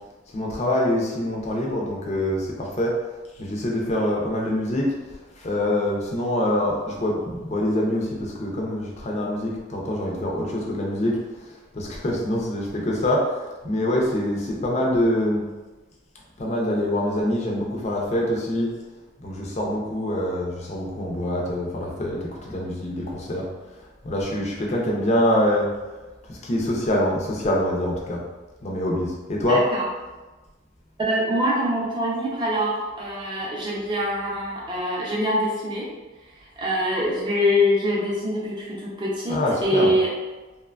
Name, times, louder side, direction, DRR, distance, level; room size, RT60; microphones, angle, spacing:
voice 1, 0.3-3.0 3.4-4.9 5.4-11.2 11.7-15.4 16.4-18.7 19.2-23.5 24.0-25.7 26.3-28.2 28.6-29.6 39.3-39.9, left 1 dB, 35° left, -2 dB, 0.4 m, -25 dB
voice 2, 29.5-29.9 31.1-35.9 36.4-40.1, equal, 20° right, -4 dB, 0.5 m, -24 dB
2.9 x 2.2 x 2.3 m, 1.2 s
head